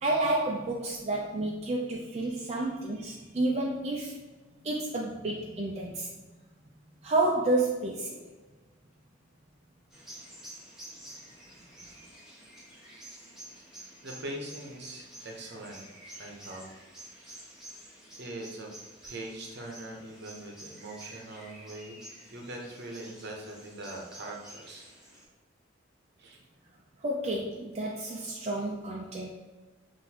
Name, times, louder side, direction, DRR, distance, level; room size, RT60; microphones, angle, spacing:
voice 1, 0.0-4.2 4.6-6.1 7.0-8.2 27.0-29.3, right 2 dB, 35° right, -2 dB, 0.4 m, -30 dB
sound 1, 9.9-25.2, right 1 dB, 5° right, 1.3 m, -50 dB
voice 2, 14.0-15.9 16.2-16.7 18.2-18.7 19.0-21.9 22.3-24.9 26.2-26.4, right 1 dB, 55° right, 0 dB, 0.8 m, -42 dB
5.8 x 2.6 x 2.8 m, 1.2 s
head